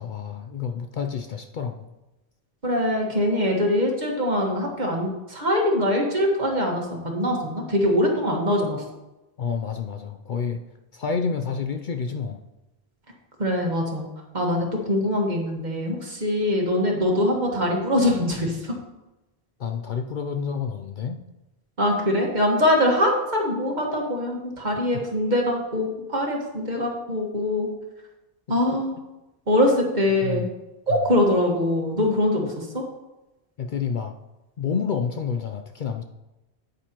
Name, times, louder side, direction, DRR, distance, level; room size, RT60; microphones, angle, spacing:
voice 1, 0.0-1.9 9.4-10.6 10.9-12.4 19.6-21.2 28.5-28.6 30.2-30.5 30.9-31.0 33.6-34.1 34.6-36.0, left 6 dB, 55° left, 6 dB, 0.6 m, -29 dB
voice 2, 2.6-8.8 13.4-14.0 14.3-18.7 21.8-27.7 28.5-28.9 29.5-30.5 30.9-32.8, left 1 dB, 45° right, 0 dB, 1.6 m, -23 dB
9.1 x 9.0 x 2.9 m, 1.0 s
omnidirectional pair, 1.1 m